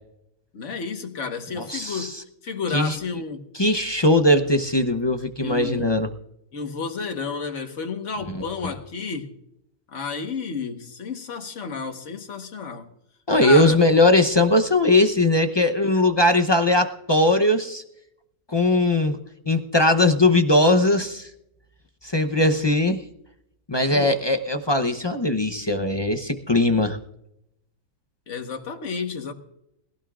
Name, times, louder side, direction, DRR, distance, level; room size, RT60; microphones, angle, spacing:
voice 1, 0.5-3.5 5.4-5.9 6.5-9.3 9.9-12.9 13.4-13.8 23.9-24.2 28.3-29.3, left 5 dB, 50° left, 1.6 m, -31 dB
voice 2, 1.6-2.2 2.7-3.0 3.5-6.1 13.3-17.8 18.5-19.2 19.5-21.3 22.0-23.0 23.7-27.0, left 1 dB, 25° left, 0.5 m, -20 dB
21.0 x 15.5 x 2.5 m
omnidirectional pair, 1.6 m